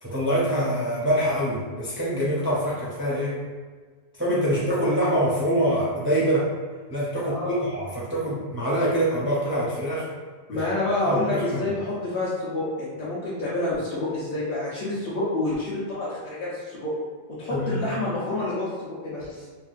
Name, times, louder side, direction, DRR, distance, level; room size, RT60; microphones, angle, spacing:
voice 1, 0.0-3.4 4.2-6.5 6.9-10.1 10.5-10.6 11.1-11.6 17.5-17.8, equal, 20° right, -7 dB, 0.4 m, -25 dB
voice 2, 7.3-7.6 10.5-16.9 17.4-19.5, left 2 dB, 65° left, -9 dB, 1.0 m, -28 dB
3.6 x 2.2 x 2.4 m, 1.5 s
omnidirectional pair, 1.1 m